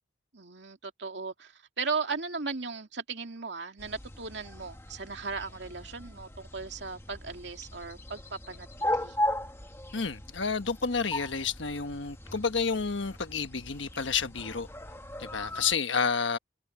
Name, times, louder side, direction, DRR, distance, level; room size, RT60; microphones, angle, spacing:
voice 1, 0.3-9.2 15.5-15.7, right 4 dB, 60° right, 2.6 m, -37 dB
sound 1, 3.8-15.7, left 1 dB, 15° left, 1.3 m, -38 dB
voice 2, 9.9-14.7 15.2-16.4, left 5 dB, 70° left, 1.3 m, -30 dB
head